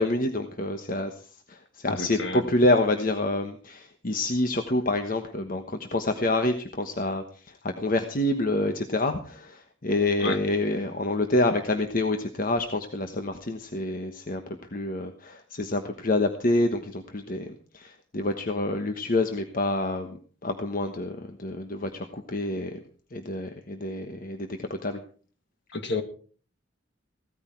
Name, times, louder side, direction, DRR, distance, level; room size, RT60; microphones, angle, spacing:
voice 1, 0.0-22.8 23.1-25.0, left 2 dB, 45° left, 6 dB, 1.2 m, -27 dB
voice 2, 1.9-2.4 10.2-10.4 25.7-26.0, left 2 dB, 60° left, 7 dB, 2.1 m, -30 dB
16.5 x 13.0 x 4.5 m, 0.42 s
head